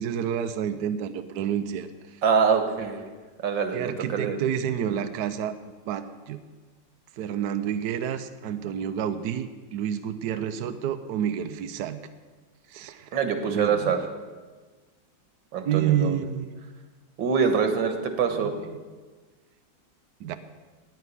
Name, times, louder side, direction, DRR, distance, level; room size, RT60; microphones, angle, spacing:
voice 1, 0.0-1.9 3.7-5.5 5.9-6.4 7.2-12.0 12.7-13.1 13.5-13.9 15.6-16.5 18.3-18.8 20.2-20.4, right 9 dB, 70° right, 8 dB, 1.2 m, -29 dB
voice 2, 2.2-3.1 3.4-4.4 13.1-14.0 15.5-16.2 17.2-18.5, right 6 dB, 90° right, 6 dB, 2.0 m, -24 dB
9.5 x 9.3 x 9.8 m, 1.4 s
omnidirectional pair, 2.0 m